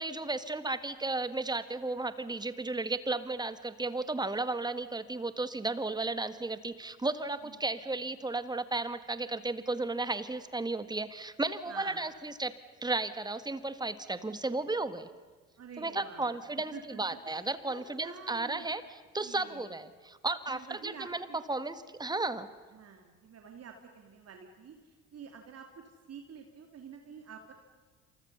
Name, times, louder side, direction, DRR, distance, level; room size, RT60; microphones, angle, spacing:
voice 1, 0.0-12.5 12.8-15.1 15.8-22.5, right 2 dB, 10° right, 12 dB, 1.8 m, -34 dB
voice 2, 11.7-12.0 15.6-18.7 19.2-19.7 20.5-21.4 22.7-25.7 26.1-27.5, right 6 dB, 40° right, 3 dB, 2.9 m, -48 dB
29.0 x 28.0 x 5.6 m, 1.4 s
figure-of-eight pair, 55°, 36 cm